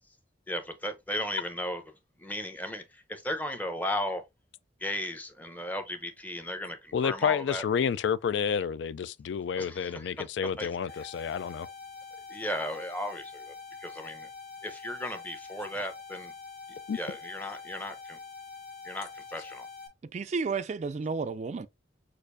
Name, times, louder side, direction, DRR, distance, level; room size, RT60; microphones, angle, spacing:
voice 1, 0.5-1.8 2.2-4.2 4.8-7.6 9.6-10.1 10.6-10.7 12.3-13.5 13.8-14.3 14.6-16.3 16.9-18.2 18.8-19.7, left 1 dB, 10° left, 0.7 m, -35 dB
voice 2, 6.9-11.7 16.9-17.0, left 7 dB, 75° left, 0.3 m, -29 dB
sound 1, 10.9-19.9, left 5 dB, 55° left, 1.7 m, -45 dB
voice 3, 20.0-21.7, right 4 dB, 40° right, 0.3 m, -32 dB
6.4 x 2.5 x 2.5 m
head